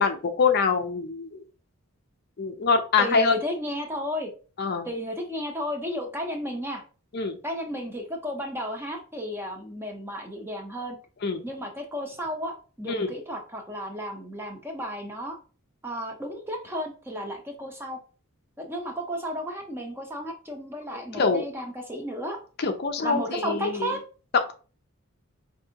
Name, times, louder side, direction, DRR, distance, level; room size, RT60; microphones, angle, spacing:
voice 1, 0.0-1.4 2.4-3.4 4.6-4.9 7.1-7.4 11.2-11.4 12.9-13.1 21.1-21.4 22.6-23.8, left 5 dB, 45° left, 6 dB, 0.4 m, -24 dB
voice 2, 3.0-4.3 4.8-6.8 7.4-11.0 11.4-15.4 15.8-18.0 18.6-22.4 23.0-24.0, equal, 10° right, 2 dB, 0.7 m, -33 dB
4.7 x 2.6 x 2.8 m, 0.36 s
head